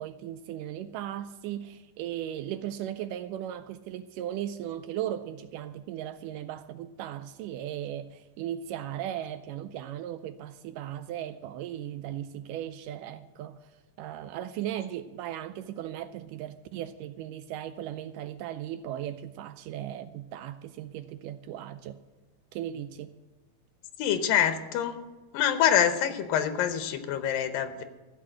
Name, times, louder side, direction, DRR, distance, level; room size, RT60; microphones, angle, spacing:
voice 1, 0.0-13.7 14.0-22.0 22.5-23.1, right 11 dB, 80° right, 2.0 m, -37 dB
voice 2, 24.0-25.0 25.3-27.8, left 9 dB, 80° left, 2.7 m, -25 dB
15.0 x 6.5 x 7.6 m
omnidirectional pair, 4.0 m